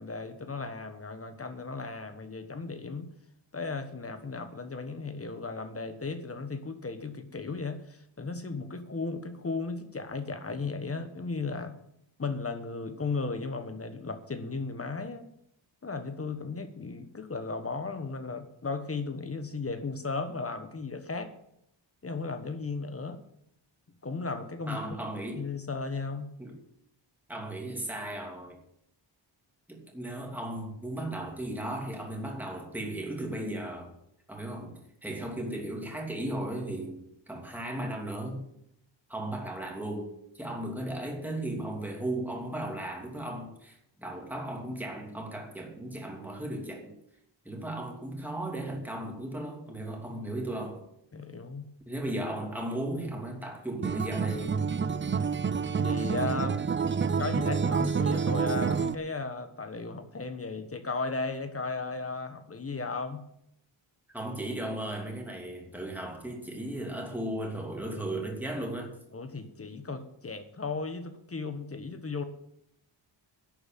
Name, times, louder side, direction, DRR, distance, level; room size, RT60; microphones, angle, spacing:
voice 1, 0.0-3.1 3.5-11.8 12.2-15.3 15.8-21.3 22.0-23.2 24.0-24.8 25.3-26.3 51.1-51.7 55.8-56.7 57.2-63.2 69.1-72.2, left 3 dB, 30° left, 9 dB, 1.3 m, -35 dB
voice 2, 24.7-25.5 26.4-26.6 27.3-28.6 29.7-33.9 34.3-38.4 39.1-47.0 47.4-50.8 51.9-54.6 64.1-69.0, right 1 dB, 5° right, 0 dB, 2.8 m, -36 dB
Acoustic guitar, 53.8-59.0, right 6 dB, 25° right, 0.4 m, -28 dB
11.0 x 8.0 x 9.2 m, 0.75 s
wide cardioid pair, 165°, 46 cm